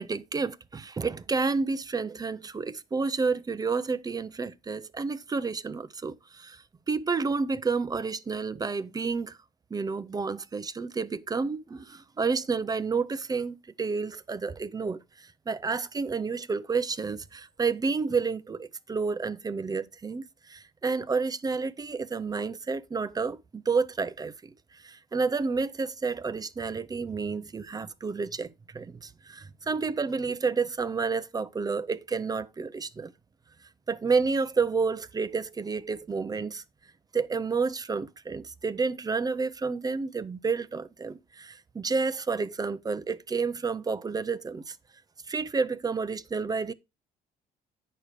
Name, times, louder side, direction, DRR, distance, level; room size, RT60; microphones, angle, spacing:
voice 1, 0.0-9.4 9.7-24.3 24.7-28.5 28.7-33.1 33.9-36.6 37.1-44.8 45.3-46.7, right 4 dB, 20° right, 0.6 m, -30 dB
9.9 x 4.8 x 5.0 m
cardioid pair, 110°, 17 cm